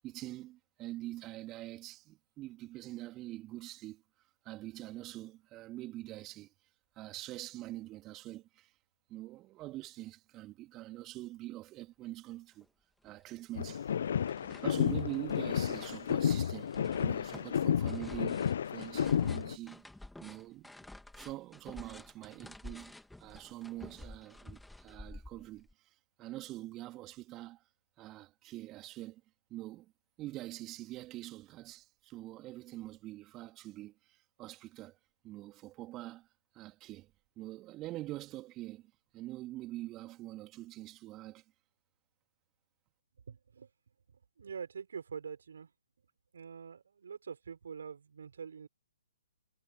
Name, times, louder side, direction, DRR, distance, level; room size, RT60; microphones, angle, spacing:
voice 1, 0.0-4.0 4.4-6.5 6.9-8.7 9.1-12.7 13.0-13.9 14.6-19.8 20.2-20.7 21.1-22.9 23.2-27.6 28.0-29.2 29.5-29.9 30.2-35.0 35.2-36.3 36.5-37.1 37.4-41.4, right 16 dB, 25° right, 3.2 m, -45 dB
sound 1, 12.6-12.7 13.1-13.8 14.0-25.7, left 1 dB, 5° left, 3.1 m, -51 dB
sound 2, 13.5-19.6, left 8 dB, 55° left, 1.0 m, -32 dB
voice 2, 43.3-43.7 44.4-45.7 46.3-48.7, right 6 dB, 65° right, 6.6 m, -45 dB
figure-of-eight pair, 130°, 0 cm